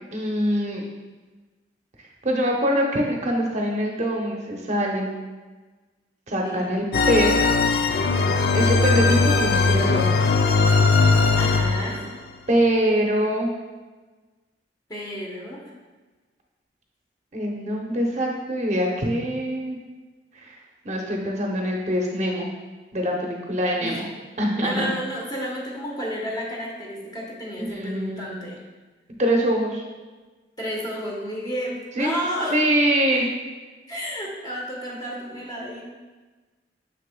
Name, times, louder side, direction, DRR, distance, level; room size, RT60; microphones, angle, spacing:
voice 1, 0.1-0.8 2.2-5.1 6.3-7.3 8.5-10.1 12.5-13.5 17.3-19.8 20.3-20.6 20.8-22.5 22.9-24.1 24.4-24.9 27.6-28.3 29.2-29.8 32.0-32.1 32.5-33.3, equal, 40° right, 0 dB, 0.8 m, -24 dB
voice 2, 6.4-6.7 11.4-12.0 14.9-15.6 23.8-24.0 24.6-28.6 30.6-32.6 33.9-35.8, equal, 25° left, -3 dB, 1.1 m, -31 dB
sound 1, 6.9-12.1, left 4 dB, 60° left, 0.4 m, -19 dB
6.6 x 6.4 x 2.3 m, 1.3 s
head